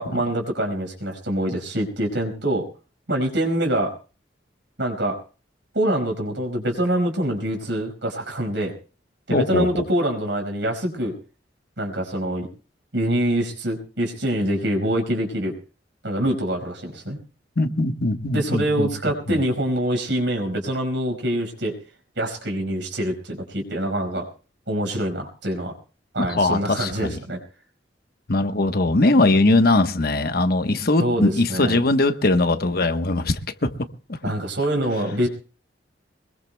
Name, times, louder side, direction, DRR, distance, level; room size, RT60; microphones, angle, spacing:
voice 1, 0.0-2.6 3.1-3.9 4.8-5.2 5.7-8.7 9.3-11.1 11.8-12.5 12.9-15.5 16.0-17.2 18.3-21.7 22.2-24.3 24.7-25.7 26.1-27.4 31.0-31.8 34.2-35.3, right 1 dB, 75° right, 5.1 m, -25 dB
voice 2, 9.3-9.7 17.6-18.9 19.3-19.4 26.2-27.2 28.3-33.7 34.1-34.2, left 2 dB, 55° left, 1.1 m, -20 dB
23.5 x 21.5 x 2.3 m
head